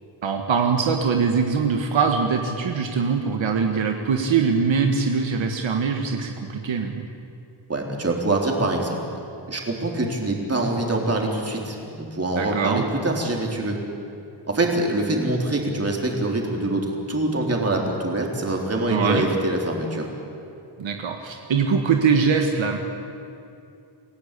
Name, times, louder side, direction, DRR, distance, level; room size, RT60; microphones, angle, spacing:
voice 1, 0.2-7.1 12.4-12.8 18.9-19.3 20.8-22.8, right 5 dB, 75° right, 3 dB, 1.7 m, -22 dB
voice 2, 7.7-9.0 9.5-13.8 14.5-20.1, right 2 dB, 30° right, 0 dB, 3.9 m, -24 dB
28.0 x 17.5 x 8.5 m, 2.7 s
wide cardioid pair, 130°, 47 cm